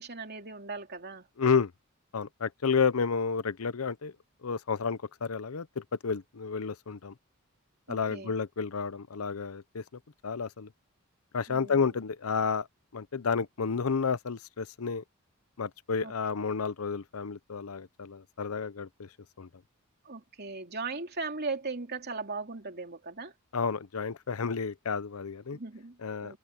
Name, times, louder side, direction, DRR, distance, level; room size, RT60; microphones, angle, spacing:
voice 1, 0.0-1.3 7.9-8.3 11.5-11.9 16.0-16.1 20.0-23.3 25.5-26.4, right 3 dB, 50° right, 3.1 m, -38 dB
voice 2, 1.4-1.7 2.1-4.1 4.4-7.1 7.9-9.8 10.2-10.7 11.3-12.7 12.9-15.0 15.6-19.1 19.4-19.5 23.5-25.6 26.0-26.4, left 5 dB, 90° left, 0.7 m, -31 dB
head